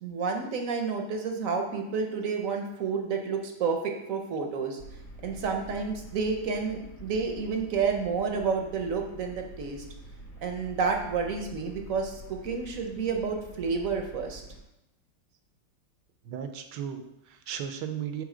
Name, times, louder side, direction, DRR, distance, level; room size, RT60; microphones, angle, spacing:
voice 1, 0.0-4.8 5.2-9.8 10.4-14.4, right 5 dB, 60° right, 3 dB, 0.9 m, -30 dB
sound 1, 4.8-14.6, right 2 dB, 85° left, 2.2 m, -47 dB
voice 2, 16.2-18.2, right 8 dB, 80° right, 8 dB, 1.3 m, -36 dB
7.3 x 3.4 x 4.9 m, 0.89 s
omnidirectional pair, 2.0 m